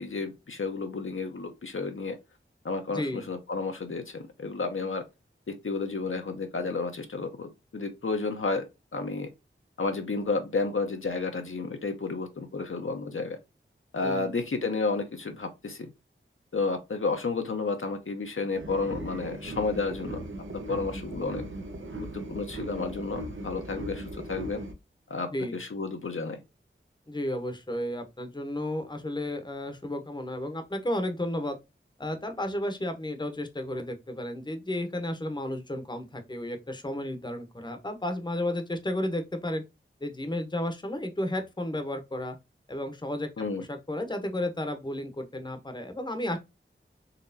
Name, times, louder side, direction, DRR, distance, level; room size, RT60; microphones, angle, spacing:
voice 1, 0.0-2.2 2.6-5.0 5.5-9.3 9.8-13.4 13.9-15.9 16.5-20.2 20.5-21.4 22.0-24.6 25.1-26.4 43.4-43.6, left 3 dB, 70° left, 0.8 m, -31 dB
voice 2, 2.9-3.2 14.0-14.4 25.3-25.5 27.1-31.6 32.0-39.6 40.0-42.4 42.7-43.3 43.6-46.4, left 1 dB, 20° left, 0.8 m, -33 dB
sound 1, 18.5-24.7, right 1 dB, 70° right, 0.8 m, -38 dB
4.1 x 3.0 x 2.6 m
wide cardioid pair, 65°, 21 cm